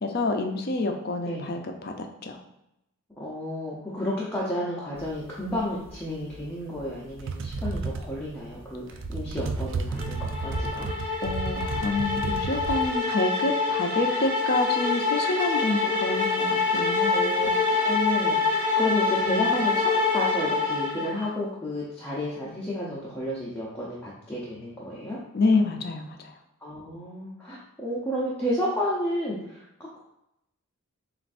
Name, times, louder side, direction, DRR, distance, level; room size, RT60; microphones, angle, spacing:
voice 1, 0.0-2.4 11.2-17.2 25.3-26.3, left 3 dB, 45° left, 4 dB, 0.5 m, -27 dB
voice 2, 1.2-1.5 3.2-8.8 9.1-10.9 17.1-17.5 17.8-25.2 26.6-29.6, left 1 dB, 10° left, -7 dB, 0.7 m, -31 dB
sound 1, 5.0-12.9, right 3 dB, 55° right, 0.4 m, -33 dB
sound 2, 10.0-21.3, left 4 dB, 10° right, 1.2 m, -26 dB
7.3 x 2.5 x 2.5 m, 0.84 s
head